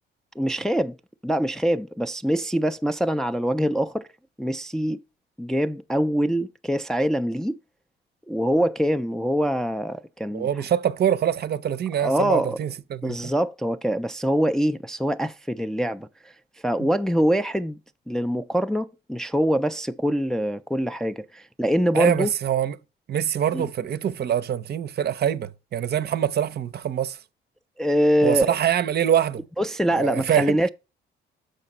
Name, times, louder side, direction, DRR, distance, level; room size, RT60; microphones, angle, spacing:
voice 1, 0.4-1.0 1.2-4.1 4.4-5.0 5.4-7.6 8.3-10.5 12.0-12.6 13.0-16.1 16.6-17.8 18.1-22.3 23.5-23.7 27.8-28.5 29.6-30.7, equal, 5° left, 0.4 m, -24 dB
voice 2, 10.3-13.3 16.8-16.9 21.9-22.7 23.1-27.2 28.2-29.4 30.0-30.6, right 10 dB, 55° right, 0.6 m, -24 dB
6.6 x 4.9 x 5.3 m
cardioid pair, 90°, 20 cm